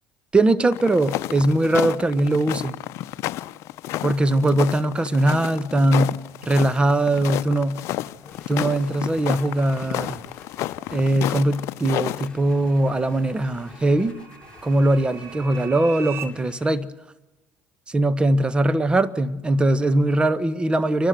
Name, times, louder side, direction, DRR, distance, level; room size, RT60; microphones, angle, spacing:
voice 1, 0.3-2.8 4.0-7.8 8.5-10.2 10.9-14.2 14.6-16.9 17.9-21.1, right 1 dB, 20° right, 14 dB, 1.4 m, -21 dB
sound 1, 0.7-12.3, left 15 dB, 65° left, 0.7 m, -30 dB
sound 2, 8.1-16.8, left 4 dB, 15° left, 7.4 m, -48 dB
sound 3, 12.1-16.3, right 9 dB, 55° right, 1.8 m, -41 dB
29.0 x 12.5 x 7.8 m, 0.98 s
supercardioid pair, 85°, 5 cm